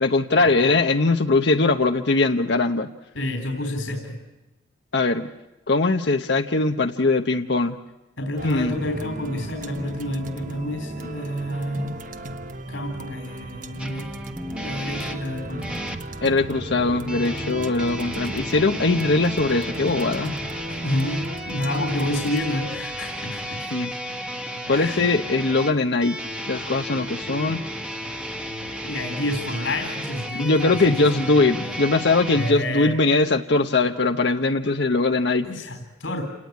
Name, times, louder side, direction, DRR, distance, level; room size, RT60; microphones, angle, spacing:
voice 1, 0.0-2.9 4.9-5.3 5.7-7.7 8.4-8.7 16.2-20.4 23.7-23.9 24.7-26.2 26.5-27.6 30.3-35.7, left 3 dB, 60° left, 5 dB, 0.9 m, -21 dB
voice 2, 3.1-4.2 8.2-11.9 12.7-14.1 14.6-15.8 20.7-23.7 24.7-25.1 26.9-27.0 28.8-30.8 31.1-31.7 32.3-33.0 35.4-36.2, left 1 dB, 80° left, 5 dB, 3.8 m, -29 dB
sound 1, 8.4-23.7, right 2 dB, 45° right, 1.2 m, -36 dB
sound 2, 13.8-16.0 17.1-32.5, equal, 5° right, 1.4 m, -33 dB
29.0 x 18.5 x 9.5 m, 1.0 s
head